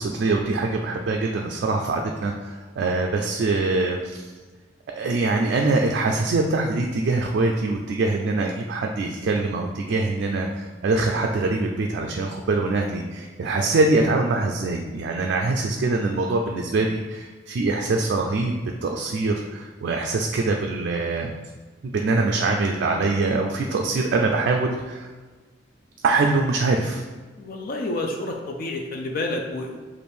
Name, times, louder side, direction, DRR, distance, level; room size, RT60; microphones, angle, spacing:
voice 1, 0.0-4.3 4.9-21.3 21.8-25.1 26.0-27.0, right 3 dB, 60° right, 1 dB, 0.3 m, -23 dB
voice 2, 27.4-29.8, left 2 dB, 50° left, 2 dB, 0.4 m, -29 dB
3.4 x 2.5 x 4.3 m, 1.3 s
head